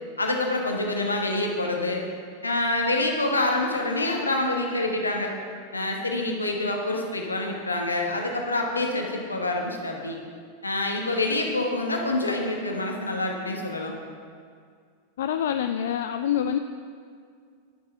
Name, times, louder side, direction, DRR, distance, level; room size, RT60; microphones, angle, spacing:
voice 1, 0.2-2.0 2.4-5.3 5.7-10.2 10.6-13.9, left 2 dB, 80° left, 1 dB, 1.2 m, -26 dB
voice 2, 15.2-16.6, left 9 dB, 60° left, 8 dB, 0.3 m, -26 dB
10.0 x 6.6 x 5.3 m, 2.1 s
figure-of-eight pair, 90°, 0 cm